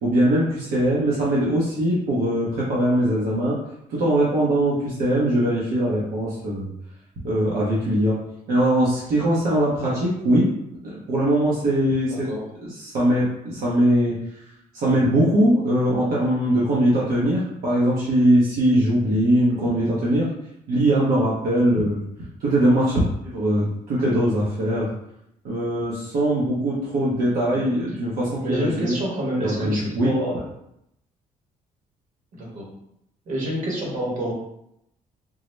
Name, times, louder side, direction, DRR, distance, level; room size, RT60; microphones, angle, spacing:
voice 1, 0.0-3.6 3.9-6.7 7.2-8.2 8.5-10.5 10.8-12.3 12.6-14.2 14.7-20.3 20.7-22.0 22.4-24.9 25.4-29.0 29.4-30.1, right 1 dB, 85° right, -7 dB, 0.8 m, -21 dB
voice 2, 27.5-28.0 28.4-30.4 32.3-32.7 33.3-34.3, right 1 dB, 65° right, -4 dB, 1.2 m, -28 dB
3.8 x 2.0 x 3.1 m, 0.79 s
cardioid pair, 165°, 14 cm